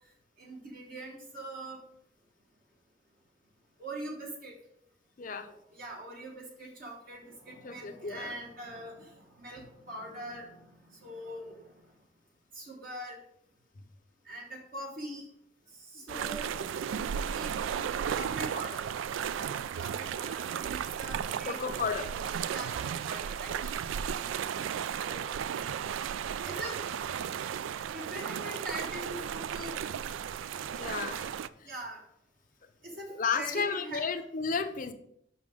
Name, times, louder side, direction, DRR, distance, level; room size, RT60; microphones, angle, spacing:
voice 1, 0.4-1.8 3.8-4.5 5.4-9.1 9.4-10.6 11.0-11.6 12.5-13.2 14.3-15.2 16.1-16.5 17.3-18.8 19.4-19.5 19.8-21.6 22.5-23.5 25.0-25.3 26.4-26.8 27.9-29.7 31.7-32.0 33.0-34.0, right 1 dB, 45° right, -1 dB, 1.1 m, -42 dB
voice 2, 5.2-5.5 7.6-8.4 15.9-16.3 21.4-22.3 30.5-31.3 31.6-31.7 32.9-34.9, left 5 dB, 40° left, 7 dB, 0.6 m, -34 dB
sound 1, 16.1-31.5, right 8 dB, 80° right, 0.3 m, -35 dB
5.9 x 5.4 x 4.9 m, 0.73 s
head